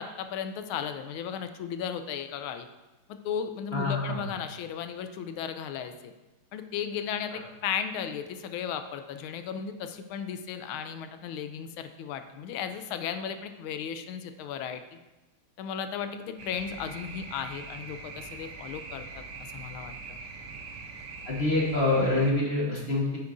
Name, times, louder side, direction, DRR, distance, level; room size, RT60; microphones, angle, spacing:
voice 1, 0.0-2.7 3.1-6.1 6.5-15.0 15.6-19.2 19.5-19.9, left 8 dB, 75° left, 9 dB, 1.4 m, -35 dB
voice 2, 3.7-4.2 21.3-23.2, left 2 dB, 35° left, -3 dB, 1.2 m, -26 dB
sound 1, 16.4-22.3, right 4 dB, 60° right, 1.2 m, -42 dB
9.1 x 8.4 x 2.6 m, 1.1 s
omnidirectional pair, 2.4 m